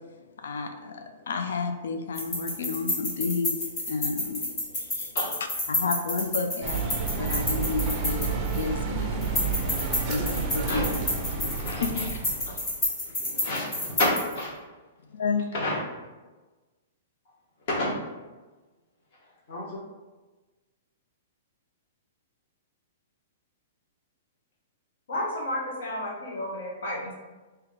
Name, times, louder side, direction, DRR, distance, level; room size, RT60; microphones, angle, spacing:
voice 1, 0.0-5.2 5.7-12.6 15.1-15.5, left 4 dB, 90° left, 6 dB, 0.4 m, -32 dB
sound 1, 2.1-8.8 9.2-14.4, left 1 dB, 15° left, 0.9 m, -30 dB
sound 2, 6.6-12.7, right 5 dB, 20° right, 0.5 m, -30 dB
voice 2, 11.6-12.0 13.0-14.1 14.3-14.5 15.5-15.7 17.7-17.9 19.5-19.7, left 1 dB, 45° left, -4 dB, 1.1 m, -30 dB
voice 3, 25.1-27.1, left 1 dB, 65° left, -2 dB, 1.1 m, -32 dB
3.5 x 2.8 x 3.6 m, 1.2 s
hypercardioid pair, 175°, 0 cm